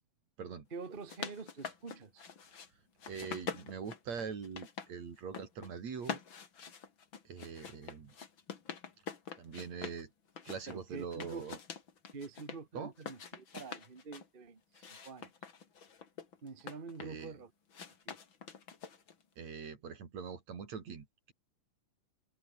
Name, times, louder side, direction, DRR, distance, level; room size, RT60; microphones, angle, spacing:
voice 1, 0.7-2.2 10.7-11.5 12.1-15.3 16.4-17.5 18.0-18.2, right 4 dB, 40° right, 0.7 m, -46 dB
sound 1, 0.8-2.7 3.0-4.9 5.2-5.7 6.0-10.0 10.4-12.6 13.0-14.3 14.7-17.3 17.7-19.2, left 6 dB, 40° left, 2.7 m, -45 dB
voice 2, 3.1-6.2 7.2-8.2 9.4-10.1 10.5-11.6 12.7-12.9 17.0-17.3 19.4-21.3, right 6 dB, 55° right, 4.4 m, -43 dB
omnidirectional pair, 3.8 m